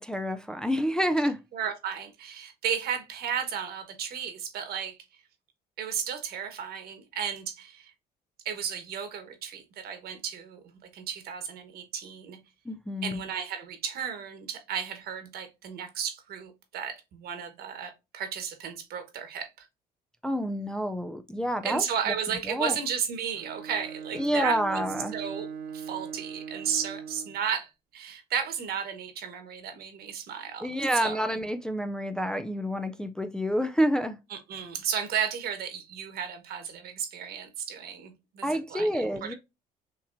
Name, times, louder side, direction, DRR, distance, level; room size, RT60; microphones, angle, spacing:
voice 1, 0.0-1.4 12.7-13.2 20.2-21.8 22.5-22.8 24.1-25.1 30.6-34.2 38.4-39.3, equal, 5° left, 0.4 m, -28 dB
voice 2, 1.5-5.0 5.8-7.9 8.4-12.4 13.0-19.7 21.6-24.8 25.1-25.5 25.7-30.7 31.0-31.3 34.3-39.3, right 7 dB, 65° right, 1.3 m, -34 dB
Bowed string instrument, 23.3-27.5, right 7 dB, 90° right, 0.7 m, -40 dB
5.8 x 3.0 x 2.6 m
cardioid pair, 110°, 17 cm